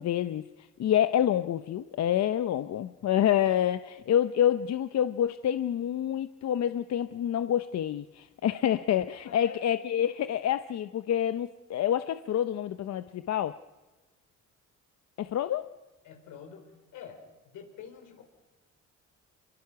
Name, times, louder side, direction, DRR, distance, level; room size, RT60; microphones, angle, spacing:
voice 1, 0.0-13.6 15.2-15.7, left 10 dB, 60° left, 11 dB, 0.7 m, -27 dB
voice 2, 9.2-9.6 16.0-17.2 17.4-18.2, left 7 dB, 85° left, 3 dB, 5.1 m, -46 dB
26.5 x 23.0 x 5.9 m, 1.2 s
cardioid pair, 90°, 30 cm